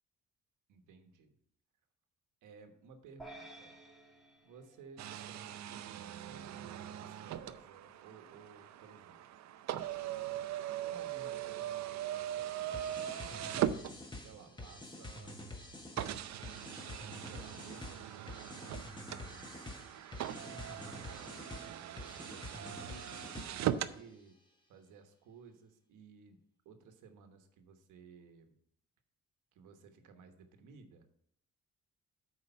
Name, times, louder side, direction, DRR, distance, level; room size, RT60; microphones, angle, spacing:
voice 1, 0.7-1.4 2.4-3.8 4.4-9.2 10.2-10.4 10.8-13.7 14.2-15.4 17.3-19.8 20.4-24.4 24.7-28.6 29.5-31.1, right 5 dB, 85° right, 6 dB, 1.3 m, -57 dB
sound 1, 3.2-5.7, right 2 dB, ahead, 1.5 m, -54 dB
sound 2, 5.0-14.5 15.2-15.3 16.0-24.0, right 11 dB, 65° right, 0.6 m, -40 dB
sound 3, 12.7-23.8, left 1 dB, 15° left, 1.4 m, -48 dB
8.4 x 4.8 x 5.6 m, 0.71 s
cardioid pair, 90°, 30 cm